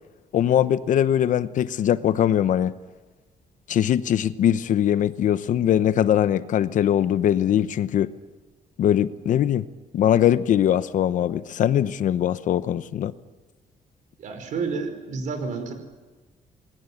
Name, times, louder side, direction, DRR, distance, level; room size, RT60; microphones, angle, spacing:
voice 1, 0.3-2.7 3.7-8.1 8.8-9.7 9.9-13.1, left 10 dB, 60° left, 0.9 m, -21 dB
voice 2, 14.2-15.7, right 4 dB, 60° right, 5.2 m, -30 dB
28.0 x 21.5 x 10.0 m
cardioid pair, 165°, 14 cm